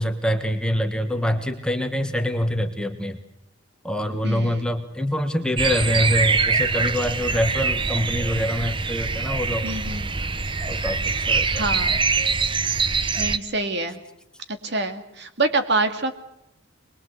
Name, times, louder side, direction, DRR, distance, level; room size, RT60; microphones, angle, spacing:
voice 1, 0.0-3.2 3.8-9.7 10.7-11.7, equal, 5° left, 6 dB, 1.5 m, -25 dB
voice 2, 4.2-4.7 9.6-10.1 11.5-12.0 13.2-14.0 14.6-16.1, right 2 dB, 55° right, 7 dB, 2.3 m, -26 dB
sound 1, 5.6-13.4, right 4 dB, 25° right, 0.8 m, -24 dB
23.5 x 21.5 x 8.0 m, 0.80 s
head